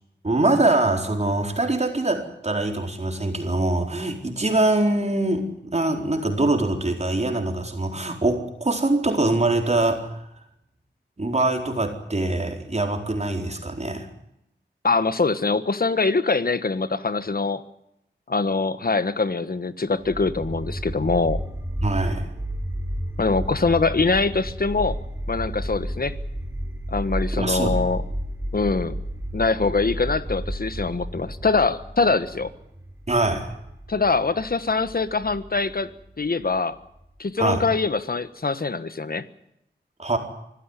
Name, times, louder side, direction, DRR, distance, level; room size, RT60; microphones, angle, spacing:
voice 1, 0.2-10.3 11.2-14.1 21.8-22.3 27.3-27.8 33.1-33.5 37.4-37.6 40.0-40.2, right 2 dB, 35° right, 3 dB, 4.3 m, -23 dB
voice 2, 14.8-17.6 18.3-21.4 23.2-25.0 25.3-26.2 26.9-28.0 28.5-29.0 29.3-32.5 33.9-35.9 36.2-36.8 37.2-39.2, left 4 dB, 55° left, 13 dB, 1.4 m, -23 dB
sound 1, 20.0-37.0, equal, 15° right, 3.4 m, -32 dB
25.0 x 15.0 x 9.9 m, 0.82 s
wide cardioid pair, 80°, 19 cm